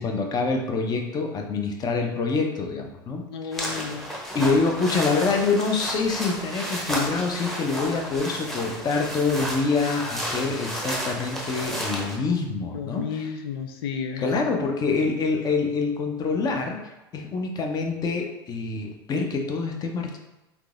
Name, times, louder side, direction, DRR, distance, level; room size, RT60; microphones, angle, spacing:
voice 1, 0.0-3.7 4.3-13.4 14.2-16.8 17.1-20.2, left 4 dB, 30° left, 3 dB, 0.6 m, -26 dB
voice 2, 3.3-4.1 12.7-14.5, left 6 dB, 80° left, 5 dB, 0.4 m, -32 dB
sound 1, 3.5-12.2, equal, ahead, 0.8 m, -32 dB
3.6 x 2.9 x 2.4 m, 1.0 s
hypercardioid pair, 100°, 12 cm